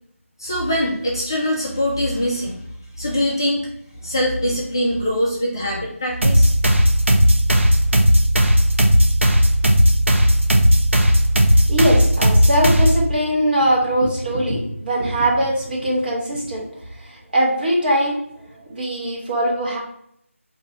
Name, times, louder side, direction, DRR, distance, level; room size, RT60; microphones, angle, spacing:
voice 1, 0.4-2.6 3.0-3.7 4.0-6.5, left 1 dB, 15° left, -3 dB, 0.3 m, -23 dB
sound 1, 6.2-13.1, equal, 60° right, 0.7 m, -15 dB
voice 2, 11.7-16.6 17.0-19.8, right 1 dB, 40° right, -2 dB, 1.1 m, -21 dB
3.8 x 2.6 x 3.0 m, 0.71 s
figure-of-eight pair, 165°, 8 cm